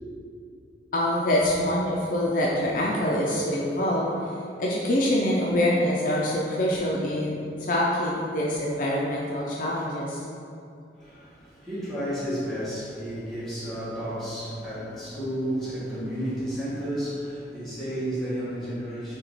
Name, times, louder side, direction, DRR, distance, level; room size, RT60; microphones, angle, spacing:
voice 1, 0.9-4.3 4.6-10.2, left 1 dB, 50° left, -4 dB, 0.4 m, -25 dB
voice 2, 11.0-19.2, equal, ahead, -12 dB, 1.5 m, -32 dB
4.5 x 2.9 x 3.9 m, 2.5 s
head